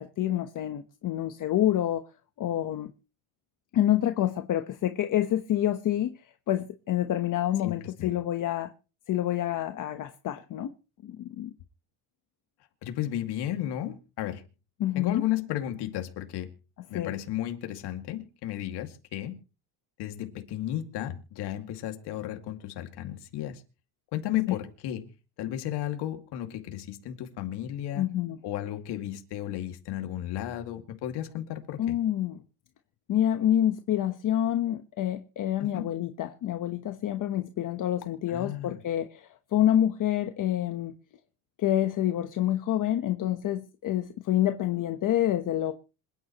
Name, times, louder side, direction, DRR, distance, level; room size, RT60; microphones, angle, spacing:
voice 1, 0.0-2.0 2.4-2.9 3.7-8.7 9.1-10.7 11.0-11.5 14.8-15.2 16.9-17.1 24.5-24.6 28.0-28.4 31.8-32.4 33.1-40.9 41.6-45.7, left 12 dB, 50° left, 1.1 m, -27 dB
voice 2, 7.6-8.1 12.8-14.4 15.0-16.5 16.9-19.4 20.0-23.6 24.1-25.1 25.4-28.1 28.4-32.0 35.6-35.9 38.3-38.8, left 12 dB, 70° left, 2.3 m, -34 dB
27.0 x 9.9 x 3.0 m
cardioid pair, 130°, 42 cm